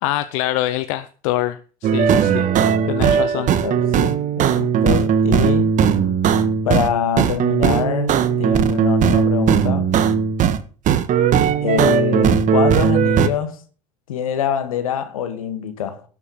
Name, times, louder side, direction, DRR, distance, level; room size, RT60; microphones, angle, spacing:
voice 1, 0.0-2.5 2.9-3.5, left 15 dB, 75° left, 0.9 m, -24 dB
sound 1, 1.8-6.9 7.2-10.6 10.9-13.3, right 7 dB, 45° right, 1.7 m, -17 dB
voice 2, 3.2-5.7 6.6-9.9 11.6-13.6 14.1-16.0, left 8 dB, 90° left, 2.1 m, -24 dB
12.5 x 7.5 x 7.5 m
hypercardioid pair, 85°, 17 cm